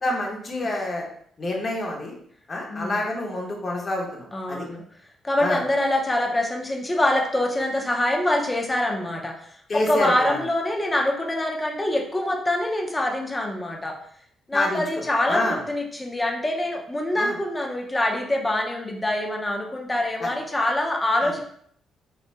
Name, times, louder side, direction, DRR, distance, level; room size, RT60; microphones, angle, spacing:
voice 1, 0.0-1.0 1.4-2.1 2.5-4.6 5.4-5.6 9.7-10.4 14.5-14.8 15.3-15.6 17.2-17.4 20.2-20.3, left 2 dB, 40° left, -1 dB, 1.3 m, -27 dB
voice 2, 2.7-3.0 4.3-4.8 5.2-9.3 9.7-13.9 14.5-21.4, left 1 dB, 15° left, 2 dB, 0.8 m, -25 dB
5.8 x 3.3 x 2.2 m, 0.65 s
cardioid pair, 90°, 0 cm